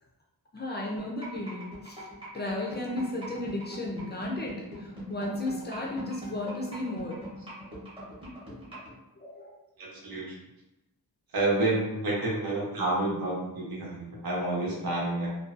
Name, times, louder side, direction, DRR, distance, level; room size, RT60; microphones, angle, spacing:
voice 1, 0.5-2.0 2.3-7.2 9.2-9.6, left 1 dB, 30° left, -2 dB, 0.3 m, -34 dB
sound 1, 1.0-8.9, right 1 dB, 15° right, 0.8 m, -41 dB
voice 2, 9.8-10.2 11.3-15.3, right 2 dB, 70° right, -4 dB, 0.8 m, -29 dB
2.5 x 2.2 x 2.4 m, 0.94 s
wide cardioid pair, 170°, 37 cm